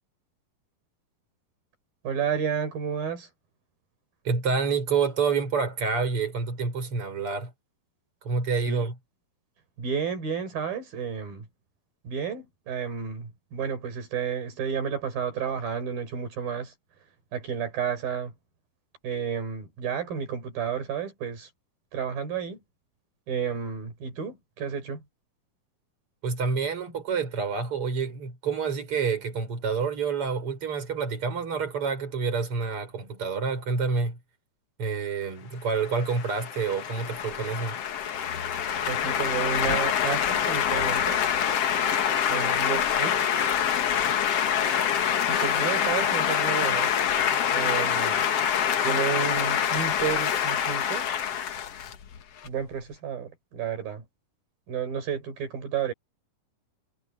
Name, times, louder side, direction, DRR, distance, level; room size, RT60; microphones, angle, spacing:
voice 1, 2.0-3.3 8.7-8.9 9.8-11.5 12.0-16.7 17.3-18.3 19.0-21.5 21.9-22.6 23.3-25.0 38.9-41.2 42.3-43.2 45.3-46.9 47.5-48.2 48.8-51.1 52.4-54.0 54.7-55.9, right 7 dB, 70° right, 6.0 m, -31 dB
voice 2, 4.2-7.5 8.2-9.0 26.2-34.2 34.8-37.8, right 5 dB, 35° right, 6.1 m, -28 dB
sound 1, 35.8-52.5, left 9 dB, 55° left, 1.8 m, -26 dB
omnidirectional pair, 4.3 m